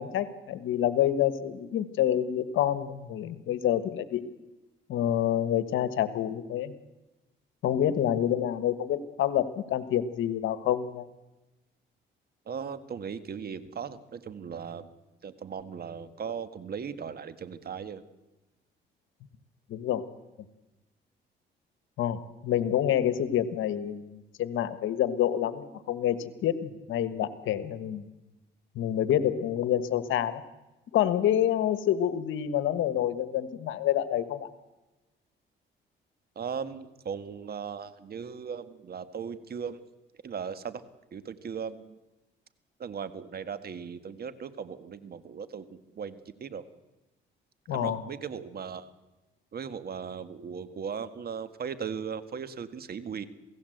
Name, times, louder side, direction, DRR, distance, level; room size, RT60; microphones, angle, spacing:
voice 1, 0.0-4.2 4.9-6.7 7.6-11.1 19.7-20.0 22.0-28.1 28.7-30.4 30.9-34.5 47.7-48.0, left 11 dB, 80° left, 13 dB, 1.5 m, -27 dB
voice 2, 12.4-14.9 15.2-18.0 36.3-39.8 40.2-40.8 41.1-42.0 42.8-46.7 47.7-48.9 49.5-53.3, right 7 dB, 50° right, 12 dB, 1.7 m, -38 dB
28.0 x 17.5 x 7.9 m, 1.1 s
cardioid pair, 90°, 20 cm